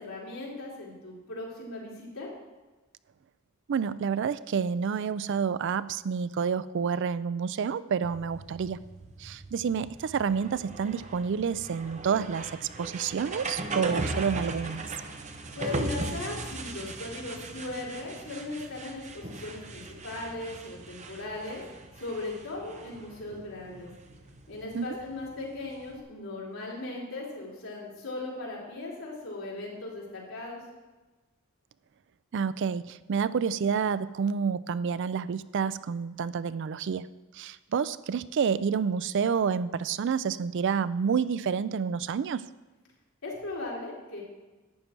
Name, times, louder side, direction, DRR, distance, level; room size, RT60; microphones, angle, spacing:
voice 1, 0.0-2.3 15.5-21.6 22.0-23.9 24.5-30.6 43.2-44.2, left 2 dB, 75° left, -5 dB, 3.9 m, -38 dB
voice 2, 3.7-8.8 9.2-14.9 24.7-25.0 32.3-37.1 37.3-42.5, right 6 dB, 55° right, 16 dB, 0.3 m, -29 dB
sound 1, 8.0-26.0, right 2 dB, 35° right, 0.9 m, -39 dB
11.5 x 9.0 x 4.5 m, 1.2 s
head